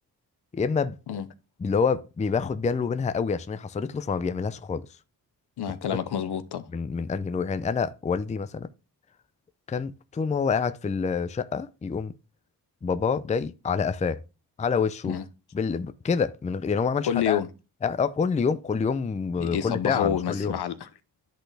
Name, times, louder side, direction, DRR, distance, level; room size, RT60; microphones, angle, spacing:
voice 1, 0.5-1.0 1.6-4.9 6.7-8.7 9.7-12.1 12.8-14.2 14.6-15.2 15.5-17.4 17.8-20.5, left 5 dB, 20° left, 0.4 m, -27 dB
voice 2, 5.6-6.7 15.0-15.2 17.0-17.5 19.4-20.9, left 9 dB, 75° left, 0.7 m, -28 dB
10.5 x 4.1 x 3.3 m
cardioid pair, 70°, 40 cm